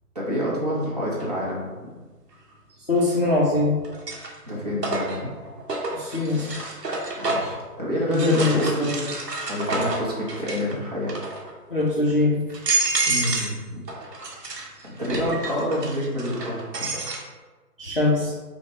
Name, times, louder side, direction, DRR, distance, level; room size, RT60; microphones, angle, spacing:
voice 1, 0.1-1.7 4.4-5.3 7.2-8.9 9.5-11.1 13.1-13.8 15.0-16.9, equal, 25° right, -6 dB, 0.7 m, -27 dB
sound 1, 1.2-1.3 3.0-3.4 3.8-7.6 8.1-10.7 11.0-11.5 12.1-12.2 12.5-13.6 13.9-17.2, right 3 dB, 80° right, 1.0 m, -29 dB
voice 2, 2.9-3.8 5.9-6.6 8.1-9.1 11.7-12.4 17.8-18.3, left 2 dB, 40° left, -5 dB, 0.4 m, -22 dB
5.7 x 2.1 x 3.0 m, 1.3 s
figure-of-eight pair, 145°, 48 cm